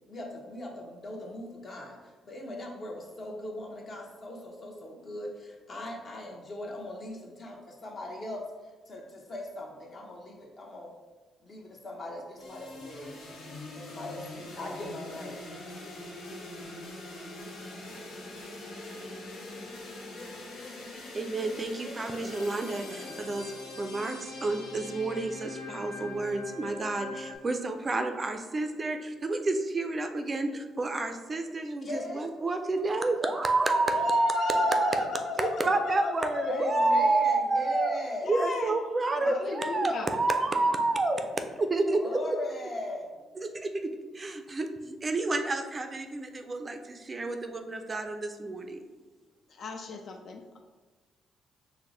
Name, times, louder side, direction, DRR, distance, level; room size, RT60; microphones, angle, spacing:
voice 1, 0.1-2.0 2.2-8.4 8.9-10.9 11.4-13.2 13.7-15.4 31.4-32.4 32.9-33.7 36.5-38.3 39.2-39.3 40.4-40.5 41.9-43.3, left 1 dB, 40° left, 0 dB, 0.9 m, -39 dB
sound 1, 12.4-27.4, left 2 dB, 85° left, 0.9 m, -42 dB
voice 2, 21.1-35.1 35.4-38.0 38.3-41.3 41.6-42.4 43.4-48.8, right 2 dB, 30° right, 6 dB, 0.4 m, -29 dB
voice 3, 33.9-37.1 38.2-38.8 39.2-40.1 49.5-50.6, left 4 dB, 60° left, 3 dB, 0.4 m, -35 dB
4.5 x 2.1 x 3.8 m, 1.3 s
cardioid pair, 90°, 0 cm